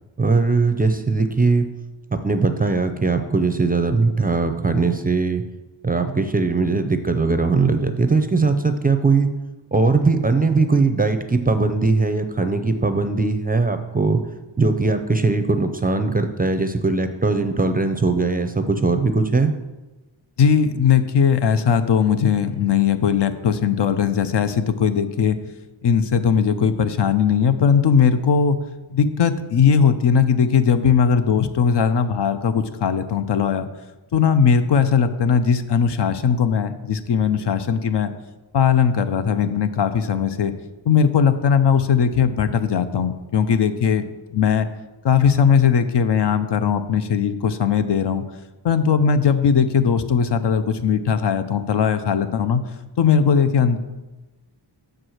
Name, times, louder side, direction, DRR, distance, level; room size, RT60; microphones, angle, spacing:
voice 1, 0.2-1.7 2.2-5.4 5.8-9.3 9.7-14.2 14.6-19.5, right 3 dB, 20° right, 8 dB, 0.5 m, -20 dB
voice 2, 20.4-25.4 25.8-28.6 28.9-33.7 34.1-38.1 38.5-40.5 40.9-44.0 44.3-44.7 45.0-48.3 48.6-52.6 53.0-53.8, left 7 dB, 65° left, 10 dB, 0.6 m, -19 dB
6.2 x 4.7 x 6.3 m, 1.1 s
wide cardioid pair, 80°, 46 cm